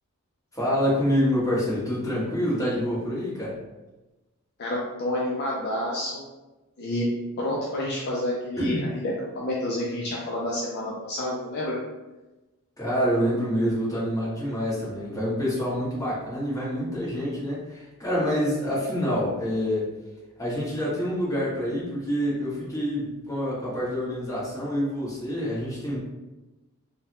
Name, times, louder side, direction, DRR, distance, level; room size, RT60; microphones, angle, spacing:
voice 1, 0.5-3.6 8.6-8.9 12.8-19.9 20.4-26.0, equal, 15° left, -9 dB, 1.1 m, -27 dB
voice 2, 4.6-6.2 6.8-7.1 7.4-11.8, left 1 dB, 45° left, -4 dB, 0.4 m, -29 dB
3.4 x 2.1 x 2.8 m, 1.1 s
head